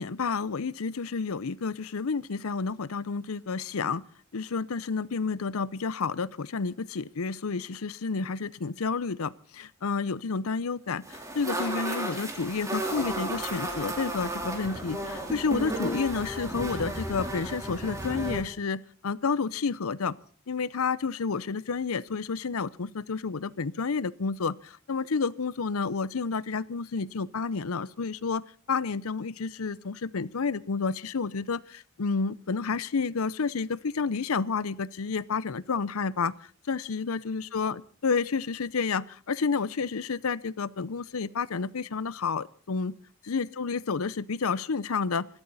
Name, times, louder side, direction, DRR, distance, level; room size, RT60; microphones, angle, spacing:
voice 1, 0.0-4.0 4.3-20.2 20.5-36.3 36.7-42.9 43.2-45.3, left 5 dB, 90° left, 20 dB, 0.7 m, -30 dB
sound 1, 11.0-18.4, right 1 dB, 15° right, 3.5 m, -33 dB
26.0 x 12.5 x 4.1 m, 0.44 s
head